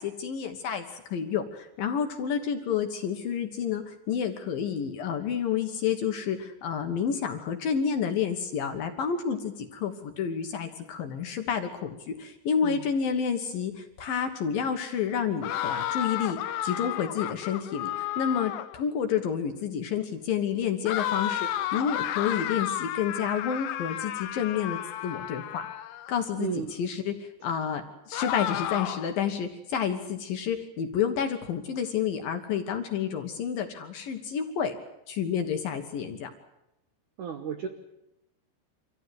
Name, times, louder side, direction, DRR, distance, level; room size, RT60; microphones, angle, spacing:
voice 1, 0.0-16.4 16.6-25.7 26.1-34.7 35.1-36.3, left 7 dB, 65° left, 6 dB, 2.6 m, -30 dB
sound 1, 15.4-18.8 20.8-26.1 28.1-29.2, left 12 dB, 80° left, 2.1 m, -32 dB
voice 2, 26.4-26.7 37.2-37.7, right 7 dB, 70° right, 5 dB, 1.9 m, -33 dB
25.5 x 15.5 x 9.4 m, 0.88 s
omnidirectional pair, 5.3 m